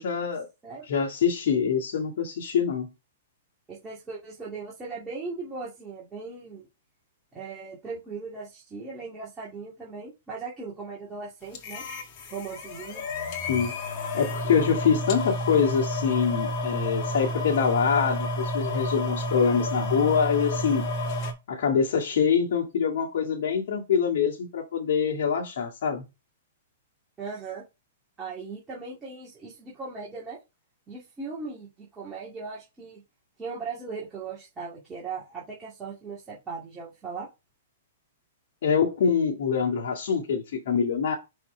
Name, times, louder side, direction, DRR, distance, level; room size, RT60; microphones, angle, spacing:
voice 1, 0.0-0.5 0.9-2.9 13.5-13.8 14.1-20.9 21.5-26.1 38.6-41.1, left 6 dB, 65° left, 2.0 m, -25 dB
voice 2, 3.7-6.7 7.3-11.8 12.3-13.1 27.2-27.6 28.2-30.4 30.9-33.0 33.4-37.3, right 4 dB, 15° right, 2.3 m, -38 dB
sound 1, 11.5-21.3, left 1 dB, 40° left, 1.9 m, -30 dB
6.0 x 4.4 x 4.5 m
hypercardioid pair, 145°, 0 cm